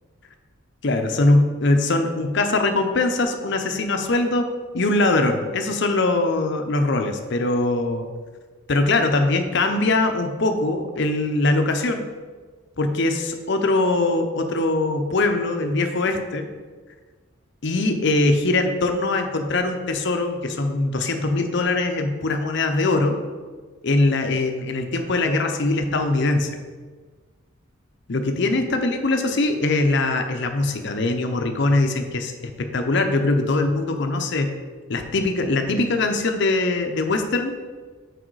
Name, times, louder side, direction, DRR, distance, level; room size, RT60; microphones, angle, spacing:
voice 1, 0.8-4.5 4.7-8.0 8.7-12.1 12.8-16.5 17.6-23.2 23.8-26.6 28.1-34.6 34.9-37.6, left 2 dB, 55° left, 5 dB, 0.6 m, -22 dB
6.3 x 4.9 x 4.7 m, 1.4 s
head